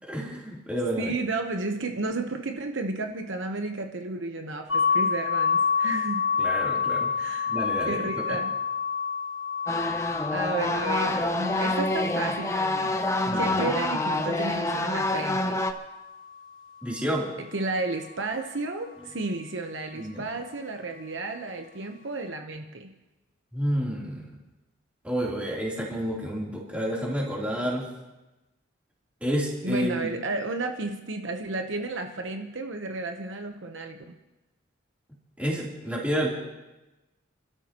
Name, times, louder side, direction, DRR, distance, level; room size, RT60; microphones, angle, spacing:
voice 1, 0.0-1.1 6.4-8.4 13.2-13.7 16.8-17.3 19.9-20.3 23.5-24.3 25.0-27.9 29.2-30.1 35.4-36.3, equal, 5° right, -5 dB, 3.2 m, -30 dB
voice 2, 1.0-6.2 7.2-7.5 7.8-8.5 10.3-13.0 13.3-15.6 17.5-22.9 29.6-34.1, right 2 dB, 65° right, 4 dB, 0.9 m, -32 dB
sound 1, 4.7-16.4, left 6 dB, 75° left, 1.4 m, -29 dB
sound 2, 9.7-15.7, left 2 dB, 15° left, 0.6 m, -27 dB
29.5 x 13.0 x 3.0 m, 1.0 s
head